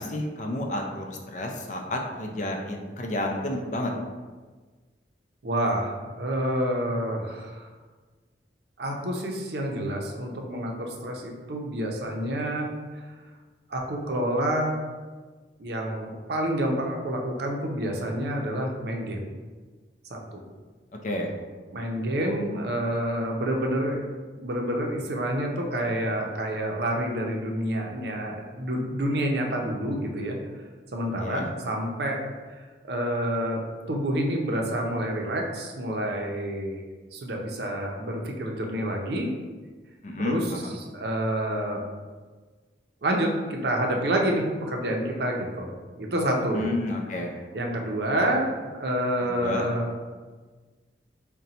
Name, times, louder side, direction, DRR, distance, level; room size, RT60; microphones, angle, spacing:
voice 1, 0.0-3.9 21.0-21.3 31.2-31.5 40.0-40.8 46.5-47.3 49.2-49.6, left 1 dB, 45° left, 2 dB, 0.4 m, -30 dB
voice 2, 5.4-7.7 8.8-12.7 12.9-13.0 13.7-14.7 15.6-19.2 20.1-20.4 21.7-24.0 24.4-30.4 30.9-32.2 32.9-33.6 33.9-36.8 37.1-39.3 40.2-41.8 43.0-45.7 46.0-46.7 47.5-49.9, right 1 dB, 65° right, 1 dB, 0.6 m, -28 dB
3.9 x 2.2 x 4.1 m, 1.4 s
head